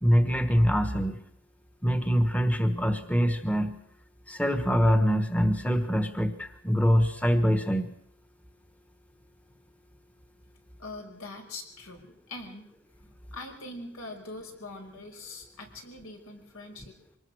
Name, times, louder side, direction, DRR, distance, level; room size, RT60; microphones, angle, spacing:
voice 1, 0.0-1.2 1.8-3.8 4.3-7.9, equal, 5° left, 8 dB, 1.3 m, -24 dB
voice 2, 10.8-12.7 13.3-16.9, left 2 dB, 80° left, 3 dB, 5.4 m, -42 dB
25.0 x 19.5 x 6.4 m, 0.73 s
head